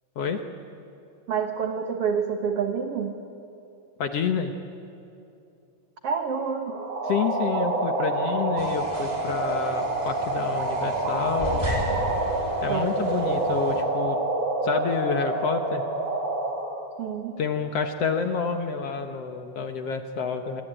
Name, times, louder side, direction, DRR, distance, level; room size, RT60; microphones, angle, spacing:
voice 1, 1.3-3.1 6.0-6.8 12.7-13.1 17.0-17.4, right 6 dB, 65° right, 5 dB, 1.5 m, -28 dB
voice 2, 4.0-4.5 7.0-11.6 12.6-14.2 14.6-15.8 17.4-20.6, left 6 dB, 70° left, 5 dB, 1.4 m, -28 dB
sound 1, 6.7-16.6, right 2 dB, 40° right, 8.8 m, -27 dB
sound 2, 8.6-13.8, equal, 10° right, 3.1 m, -35 dB
27.5 x 23.5 x 9.0 m, 2.7 s
omnidirectional pair, 4.3 m